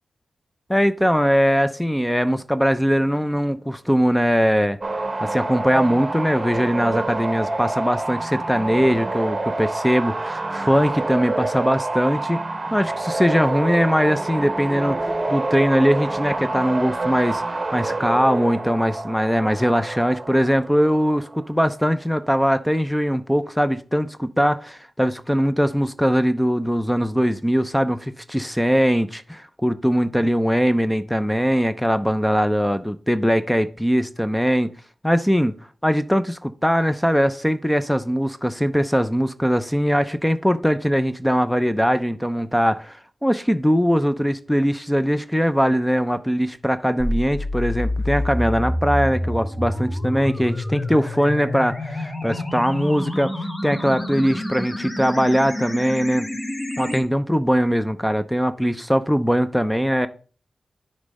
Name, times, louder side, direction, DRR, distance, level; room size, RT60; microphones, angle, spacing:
voice 1, 0.7-4.8 5.2-12.4 12.7-17.4 17.7-34.7 35.0-35.5 35.8-53.3 53.6-56.3 56.8-60.1, equal, 5° left, 0.6 m, -21 dB
sound 1, 4.8-21.5, right 2 dB, 35° right, 1.1 m, -27 dB
sound 2, 47.0-57.0, left 1 dB, 30° left, 1.8 m, -28 dB
9.6 x 3.2 x 5.2 m
cardioid pair, 50°, 0 cm